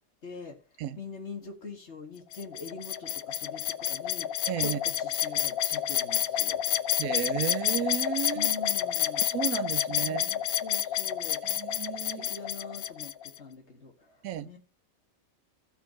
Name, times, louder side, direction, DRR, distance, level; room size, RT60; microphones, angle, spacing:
voice 1, 0.2-0.6 1.0-6.6 8.3-9.3 9.9-11.4 12.1-14.6, left 4 dB, 50° left, 2.4 m, -44 dB
sound 1, 2.3-13.4, left 11 dB, 85° left, 1.1 m, -29 dB
voice 2, 4.5-4.8 7.0-8.5 9.2-10.3 11.4-12.3 14.2-14.5, right 11 dB, 80° right, 1.1 m, -33 dB
15.5 x 5.8 x 4.2 m
omnidirectional pair, 1.5 m